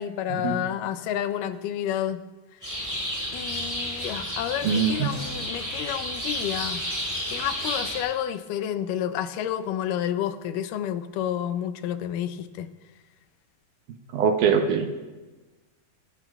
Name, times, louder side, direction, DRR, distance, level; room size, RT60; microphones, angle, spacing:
voice 1, 0.0-2.2 3.3-6.8 7.3-12.7, left 10 dB, 75° left, 10 dB, 2.1 m, -30 dB
sound 1, 2.6-8.0, equal, 5° right, 4.4 m, -31 dB
voice 2, 4.6-5.2 14.1-14.9, right 6 dB, 70° right, 5 dB, 2.1 m, -22 dB
27.0 x 14.0 x 2.4 m, 1.2 s
omnidirectional pair, 4.2 m